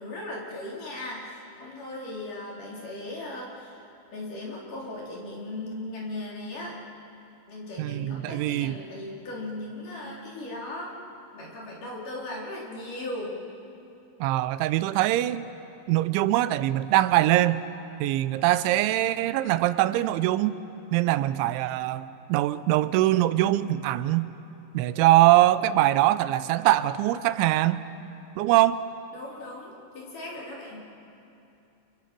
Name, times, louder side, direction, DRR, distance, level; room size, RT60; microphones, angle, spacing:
voice 1, 0.0-3.8 4.1-6.8 7.5-10.9 11.3-13.4 29.1-30.9, left 1 dB, 45° left, -3 dB, 5.1 m, -37 dB
voice 2, 7.8-8.8 14.2-15.4 15.9-17.7 18.0-20.6 20.9-24.3 24.7-27.9 28.4-28.9, right 15 dB, 90° right, 14 dB, 3.1 m, -23 dB
30.0 x 29.5 x 6.1 m, 2.8 s
omnidirectional pair, 5.3 m